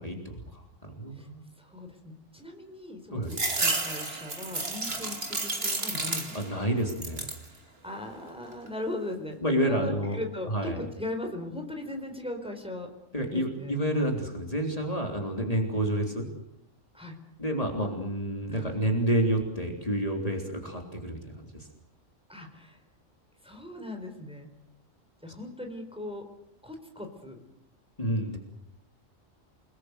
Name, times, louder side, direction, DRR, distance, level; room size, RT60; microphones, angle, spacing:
voice 1, 0.0-1.4 3.1-3.4 6.3-7.3 9.4-10.2 10.5-10.8 13.1-16.3 17.4-21.7 28.0-28.4, right 1 dB, 30° left, 2 dB, 3.6 m, -29 dB
voice 2, 1.6-6.4 7.5-9.4 9.6-12.9 13.2-13.8 16.9-17.2 18.5-18.7 22.3-22.8 23.4-24.5 25.2-26.2 26.6-27.4, left 1 dB, 5° right, 4 dB, 4.3 m, -38 dB
sound 1, 3.3-6.6 6.9-7.5 8.0-8.7, right 3 dB, 50° right, 2.7 m, -31 dB
29.0 x 20.0 x 8.1 m, 0.80 s
omnidirectional pair, 1.4 m